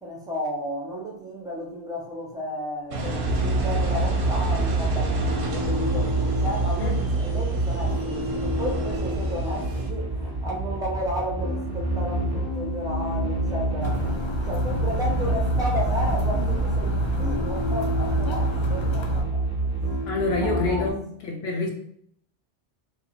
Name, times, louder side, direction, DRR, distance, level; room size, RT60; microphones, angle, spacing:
voice 1, 0.0-6.1 6.4-14.0 14.5-19.4 19.7-20.1 20.4-20.9, left 1 dB, 5° right, 0.8 m, -33 dB
Engine, 2.9-9.9, right 2 dB, 60° right, 0.8 m, -31 dB
sound 1, 3.2-20.9, right 2 dB, 20° right, 1.2 m, -26 dB
sound 2, 13.8-19.2, left 3 dB, 45° left, 0.4 m, -33 dB
voice 2, 20.1-21.7, left 3 dB, 75° left, 1.0 m, -27 dB
3.0 x 2.8 x 4.1 m
omnidirectional pair, 1.1 m